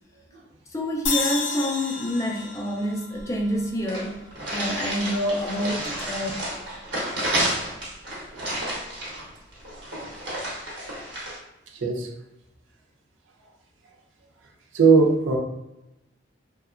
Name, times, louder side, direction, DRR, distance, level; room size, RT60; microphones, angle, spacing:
voice 1, 0.7-6.3, equal, 15° left, -1 dB, 0.3 m, -27 dB
sound 1, 1.1-4.3, left 4 dB, 85° left, 0.5 m, -31 dB
sound 2, 3.2-3.3 3.5-3.6 3.9-11.4, right 1 dB, 70° right, 0.9 m, -31 dB
voice 2, 14.7-15.4, right 4 dB, 85° right, 1 dB, 0.5 m, -18 dB
2.7 x 2.1 x 2.4 m, 0.93 s
head